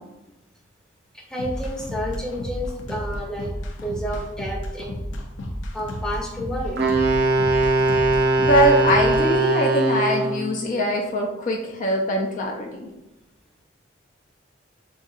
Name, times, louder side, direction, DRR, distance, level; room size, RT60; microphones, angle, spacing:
voice 1, 1.1-3.5 3.8-5.1 5.7-6.8, equal, 5° left, -2 dB, 0.7 m, -30 dB
sound 1, 1.4-9.2, equal, 90° left, 0.6 m, -32 dB
Wind instrument woodwind instrument, 6.8-10.5, right 2 dB, 55° right, 0.5 m, -20 dB
voice 2, 8.4-12.9, equal, 45° left, 1 dB, 0.4 m, -22 dB
4.9 x 2.7 x 2.4 m, 0.96 s
head